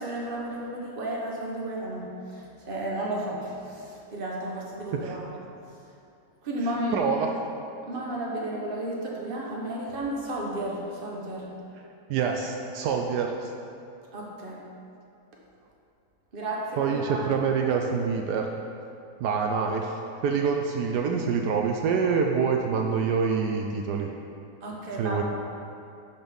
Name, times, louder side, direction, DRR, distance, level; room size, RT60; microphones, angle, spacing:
voice 1, 0.0-5.2 6.4-7.2 7.9-11.5 14.1-14.6 16.3-17.3 24.6-25.2, right 1 dB, 35° right, -3 dB, 1.4 m, -33 dB
voice 2, 6.9-7.3 12.1-13.5 16.7-18.5 19.2-24.1 25.0-25.2, right 6 dB, 75° right, 2 dB, 1.2 m, -26 dB
12.0 x 4.5 x 5.3 m, 2.6 s
omnidirectional pair, 1.8 m